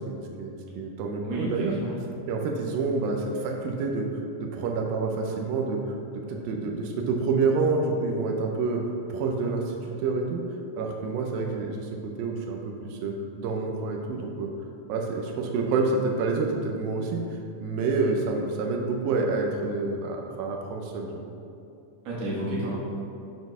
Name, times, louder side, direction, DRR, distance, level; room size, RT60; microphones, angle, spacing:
voice 1, 0.0-1.7 2.3-4.1 4.4-8.8 9.1-10.4 10.8-14.5 14.9-17.2 17.6-21.2, right 3 dB, 90° right, 1 dB, 2.4 m, -28 dB
voice 2, 1.2-1.9 22.0-22.7, right 1 dB, 50° right, -6 dB, 2.3 m, -30 dB
6.9 x 4.1 x 5.3 m, 2.7 s
omnidirectional pair, 4.0 m